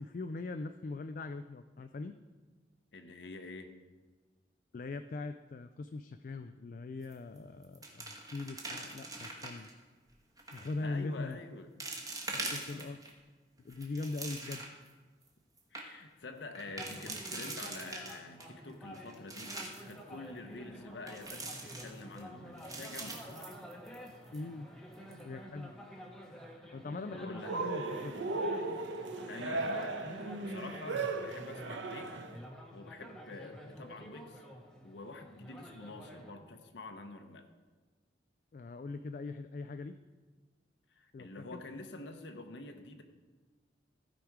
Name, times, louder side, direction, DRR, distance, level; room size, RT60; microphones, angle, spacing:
voice 1, 0.0-2.1 4.7-9.7 10.5-11.4 12.3-13.0 13.6-14.6 24.3-24.7 25.2-25.7 26.7-28.1 38.5-39.9 41.1-41.6, left 3 dB, 45° left, 8 dB, 0.3 m, -41 dB
voice 2, 2.9-3.7 10.8-11.7 12.3-12.9 15.7-19.5 19.9-23.5 27.1-27.6 29.3-32.1 32.7-34.4 34.8-37.5 40.9-43.0, left 2 dB, 75° left, 5 dB, 0.8 m, -47 dB
sound 1, 7.0-7.4 7.6-9.7 10.4-10.7 11.3-11.4 11.8-13.1 13.6-14.9 15.3-15.4 15.6-15.8 16.5-18.5 18.9-19.9 21.1-22.2 22.6-24.1 24.3-24.4 24.9-25.2, right 2 dB, 20° right, 1.2 m, -43 dB
sound 2, 16.6-36.3, equal, 5° left, 1.0 m, -50 dB
Cheering, 27.4-32.4, right 3 dB, 85° right, 0.9 m, -36 dB
15.0 x 5.1 x 4.6 m, 1.3 s
head